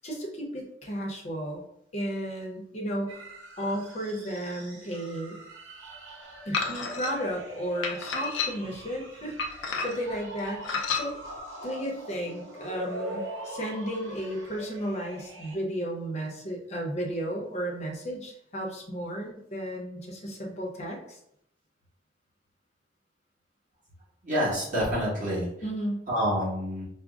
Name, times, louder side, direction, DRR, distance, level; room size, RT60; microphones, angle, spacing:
voice 1, 0.0-1.6 1.9-3.2 3.6-5.4 6.5-11.2 11.6-21.2 25.6-26.1, equal, 35° left, -1 dB, 0.7 m, -34 dB
sound 1, 3.1-15.6, right 1 dB, 90° right, 0.9 m, -42 dB
sound 2, 6.5-7.1 7.8-8.8 9.4-10.1 10.6-11.1, left 5 dB, 75° left, 0.5 m, -30 dB
voice 2, 24.2-25.5 26.1-26.8, equal, 45° right, -7 dB, 1.5 m, -27 dB
4.9 x 2.0 x 2.4 m, 0.75 s
head